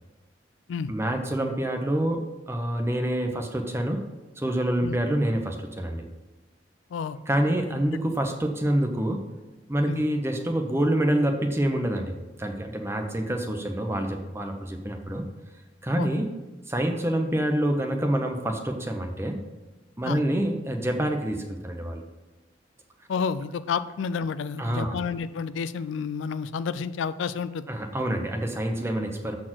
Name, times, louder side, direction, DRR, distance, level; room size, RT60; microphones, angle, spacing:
voice 1, 0.9-4.0 4.4-6.0 7.3-9.2 9.7-15.2 15.8-16.3 16.7-19.4 20.0-22.0 24.6-25.0 27.7-29.4, right 1 dB, 15° right, 4 dB, 0.7 m, -27 dB
voice 2, 23.1-27.6, left 6 dB, 75° left, 14 dB, 0.3 m, -30 dB
7.5 x 4.4 x 6.0 m, 1.1 s
head